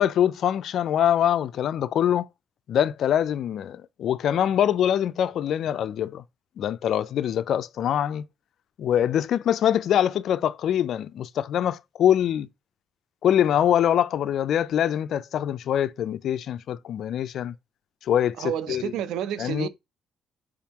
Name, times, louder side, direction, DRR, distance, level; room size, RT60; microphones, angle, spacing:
voice 1, 0.0-2.3 2.7-6.2 6.6-8.3 8.8-12.5 13.2-17.5 18.0-18.8 19.4-19.7, left 10 dB, 70° left, 0.3 m, -24 dB
voice 2, 18.4-19.7, right 10 dB, 90° right, 0.5 m, -30 dB
5.0 x 3.6 x 2.9 m
cardioid pair, 90°, 0 cm